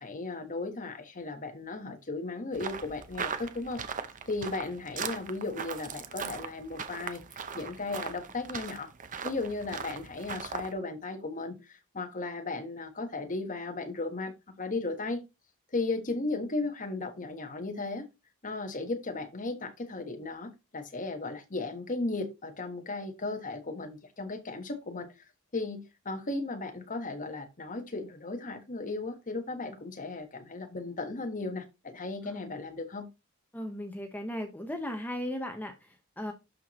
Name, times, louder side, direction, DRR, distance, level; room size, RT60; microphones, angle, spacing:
voice 1, 0.0-3.8 4.3-8.9 9.2-15.2 15.7-18.1 18.4-25.1 25.5-33.1, left 3 dB, 40° left, 1.4 m, -36 dB
sound 1, 2.5-10.7, right 6 dB, 35° right, 0.7 m, -39 dB
voice 2, 33.5-36.3, left 1 dB, 10° left, 0.9 m, -37 dB
12.0 x 4.6 x 3.1 m
head